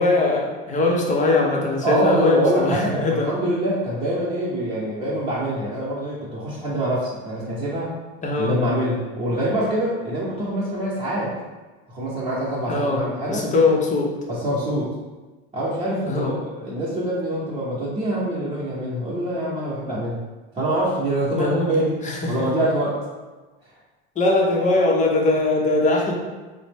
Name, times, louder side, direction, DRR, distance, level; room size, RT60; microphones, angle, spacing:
voice 1, 0.0-3.3 8.2-8.6 12.7-13.0 13.3-14.1 16.1-16.3 21.3-22.4 24.2-26.1, left 2 dB, 25° left, -1 dB, 0.7 m, -21 dB
voice 2, 1.8-7.9 8.4-11.3 11.9-13.5 14.3-14.9 15.5-20.2 20.5-22.0 22.3-23.0, right 1 dB, 20° right, -9 dB, 1.0 m, -25 dB
3.9 x 2.1 x 3.4 m, 1.2 s
supercardioid pair, 110°, 30 cm